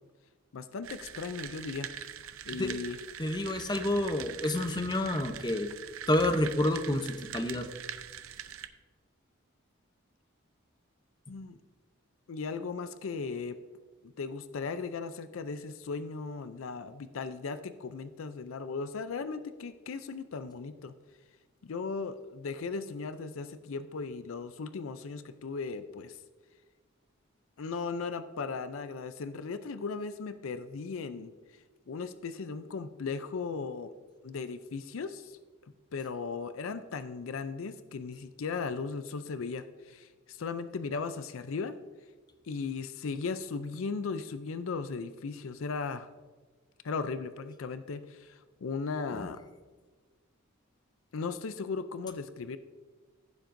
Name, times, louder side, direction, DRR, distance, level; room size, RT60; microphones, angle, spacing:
voice 1, 0.5-1.9 2.4-3.0 11.3-11.6 12.3-13.6 14.0-20.9 21.6-26.2 27.6-31.3 31.9-33.9 34.2-35.4 35.9-41.7 42.4-46.1 46.8-49.4 51.1-52.6, left 4 dB, 70° left, 11 dB, 0.5 m, -37 dB
sound 1, 0.8-8.7, right 9 dB, 75° right, 0.6 m, -43 dB
voice 2, 3.2-5.7 6.1-7.7 49.1-49.3, left 1 dB, 20° left, 8 dB, 0.7 m, -29 dB
15.0 x 7.3 x 2.6 m, 1.4 s
head